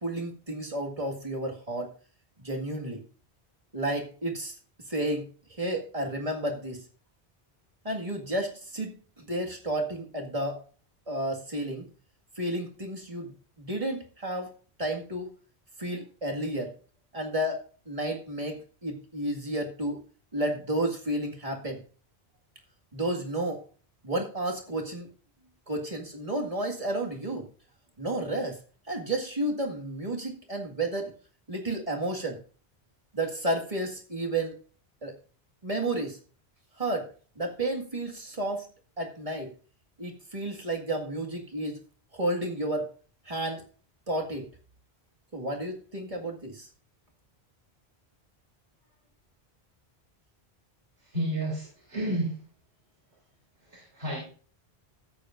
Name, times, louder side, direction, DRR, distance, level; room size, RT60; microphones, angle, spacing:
voice 1, 0.0-1.9 2.4-3.0 3.7-4.5 4.9-6.8 7.8-10.6 11.1-11.9 12.4-14.5 14.8-15.3 15.8-16.7 17.1-20.0 20.3-21.8 22.9-23.6 24.0-25.1 25.7-27.5 28.0-28.6 28.9-31.1 31.5-32.4 33.1-34.5 35.0-35.1 35.6-36.2 36.8-37.1 37.4-38.7 39.0-39.5 40.0-41.8 42.1-42.9 43.3-43.6 44.1-44.5 45.3-46.7, right 1 dB, 35° right, 1 dB, 2.0 m, -31 dB
voice 2, 51.0-52.4 53.6-54.3, right 1 dB, 70° right, -4 dB, 3.7 m, -32 dB
15.5 x 8.4 x 2.5 m, 0.40 s
omnidirectional pair, 1.1 m